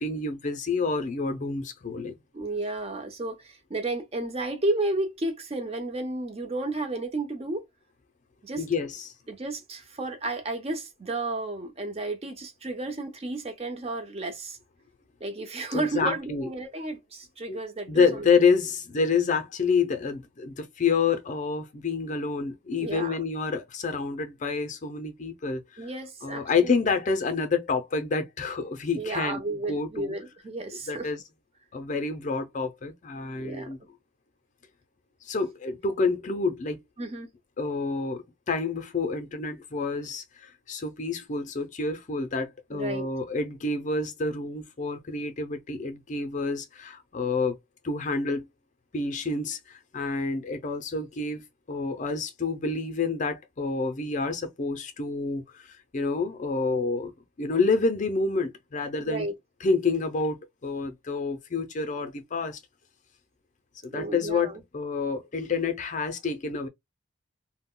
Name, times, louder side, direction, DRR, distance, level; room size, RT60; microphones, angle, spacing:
voice 1, 0.0-2.2 8.6-9.1 15.7-16.5 17.5-17.6 17.9-25.9 26.2-29.4 29.7-30.1 30.9-31.2 31.7-33.8 35.2-36.8 37.6-47.6 47.8-48.5 48.9-51.4 51.7-59.3 59.6-62.6 63.8-66.7, left 4 dB, 35° left, 0.5 m, -28 dB
voice 2, 2.3-7.6 8.4-8.7 9.3-14.6 15.2-18.2 22.8-23.2 25.8-26.7 29.0-31.1 33.4-33.7 37.0-37.3 42.7-43.1 59.0-59.3 63.9-64.6, right 2 dB, 30° right, 0.6 m, -32 dB
2.2 x 2.1 x 3.7 m
head